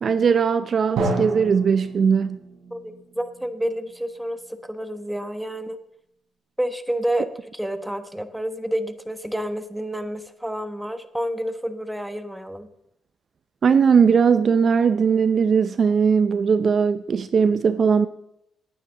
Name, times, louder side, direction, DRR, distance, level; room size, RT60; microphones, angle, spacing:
voice 1, 0.0-2.4 13.6-18.1, right 6 dB, 50° right, 12 dB, 0.6 m, -19 dB
Drum, 1.0-4.7, right 3 dB, 75° right, 5.2 m, -31 dB
voice 2, 2.7-5.8 6.6-12.7, right 1 dB, 5° right, 9 dB, 1.1 m, -29 dB
18.5 x 9.3 x 3.8 m, 0.79 s
cardioid pair, 90°, 0 cm